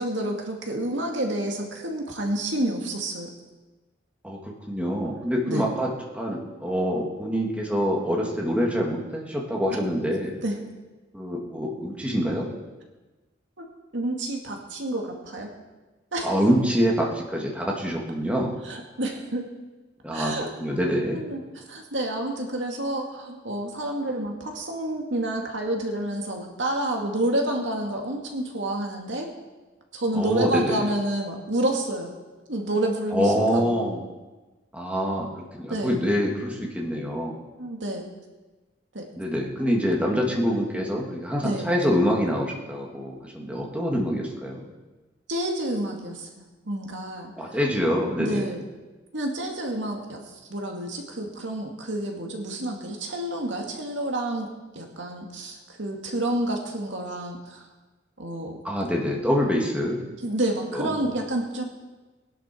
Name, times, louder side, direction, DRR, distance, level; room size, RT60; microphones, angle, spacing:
voice 1, 0.0-3.3 5.5-5.7 10.4-10.6 13.6-13.7 13.9-15.5 16.1-16.4 18.6-19.5 20.1-20.8 21.1-29.3 29.9-32.1 32.5-33.8 35.7-36.0 37.6-38.1 38.9-39.0 41.4-41.7 45.3-46.3 46.7-47.6 48.2-48.6 49.1-54.5 54.7-57.6 58.2-58.6 60.2-61.6, right 1 dB, 75° right, 1 dB, 2.3 m, -29 dB
voice 2, 4.2-10.4 11.1-12.5 16.2-18.6 20.0-20.3 20.6-21.2 30.1-30.8 33.1-34.0 34.7-35.3 35.6-37.3 39.2-44.7 47.4-48.5 58.6-60.0 60.7-61.0, equal, 5° right, -2 dB, 2.1 m, -25 dB
20.5 x 11.0 x 4.5 m, 1.2 s
head